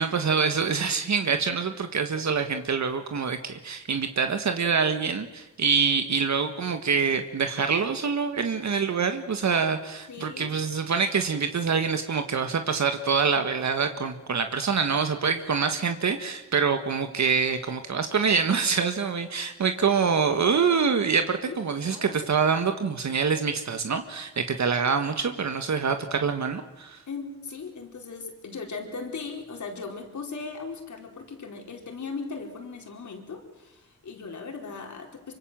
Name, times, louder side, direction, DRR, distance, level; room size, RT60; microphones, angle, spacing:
voice 1, 0.0-27.0, right 5 dB, 65° right, 7 dB, 1.7 m, -25 dB
voice 2, 10.1-10.6 21.4-21.5 21.8-22.2 27.1-35.3, left 4 dB, 70° left, 2 dB, 4.7 m, -38 dB
25.0 x 25.0 x 7.7 m, 0.98 s
wide cardioid pair, 90°, 30 cm